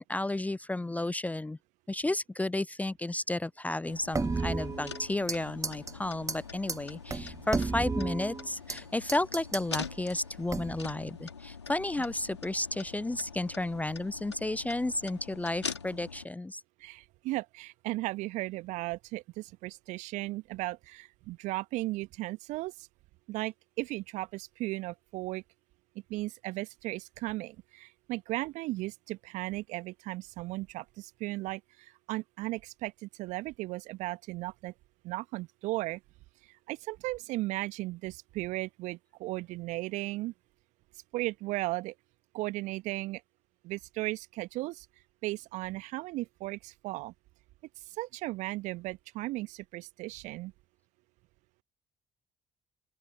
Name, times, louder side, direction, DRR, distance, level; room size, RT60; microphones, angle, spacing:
voice 1, 0.0-1.6 1.9-16.6, left 2 dB, 10° left, 0.6 m, -32 dB
sound 1, 3.9-16.2, left 5 dB, 85° left, 3.0 m, -44 dB
sound 2, 4.1-5.4 5.6-5.9 6.3-6.4 6.7-6.8 7.1-8.8 9.1-9.9 10.5-10.9, right 4 dB, 25° right, 2.3 m, -33 dB
voice 2, 16.8-22.7 23.3-25.4 26.1-31.6 32.1-34.7 35.0-36.0 36.7-40.3 41.1-41.9 42.3-43.2 43.6-44.8 45.2-47.1 48.0-50.5, right 20 dB, 60° right, 1.5 m, -36 dB
open air
figure-of-eight pair, 50°, 14 cm